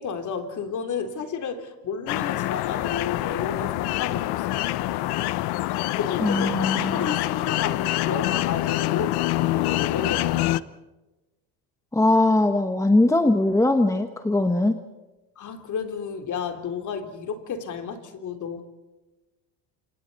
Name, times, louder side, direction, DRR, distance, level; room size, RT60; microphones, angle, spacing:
voice 1, 0.0-4.6 6.0-10.5 15.4-18.6, left 6 dB, 40° left, 5 dB, 3.6 m, -32 dB
sound 1, 2.1-10.6, left 17 dB, 60° left, 0.9 m, -26 dB
voice 2, 6.2-7.2 11.9-14.8, left 2 dB, 5° left, 7 dB, 1.1 m, -21 dB
29.5 x 27.0 x 4.2 m, 1.1 s
cardioid pair, 135°, 44 cm